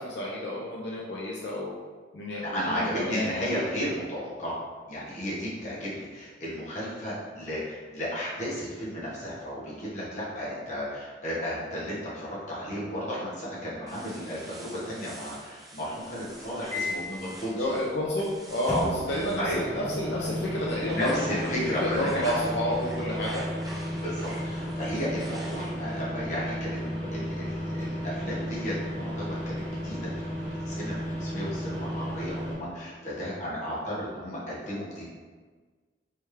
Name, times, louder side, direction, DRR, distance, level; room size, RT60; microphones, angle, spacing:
voice 1, 0.0-1.7 2.1-3.5 5.6-5.7 17.6-23.4, left 1 dB, 75° left, -4 dB, 0.6 m, -30 dB
voice 2, 2.5-17.6 18.7-19.6 20.9-22.5 23.9-35.0, equal, 40° left, -7 dB, 1.2 m, -34 dB
sound 1, 13.9-20.0 20.4-26.0, right 1 dB, 20° right, 0.6 m, -45 dB
sound 2, 16.7-17.2 18.7-32.6, equal, 10° left, 0.8 m, -34 dB
3.5 x 3.2 x 3.2 m, 1.4 s
head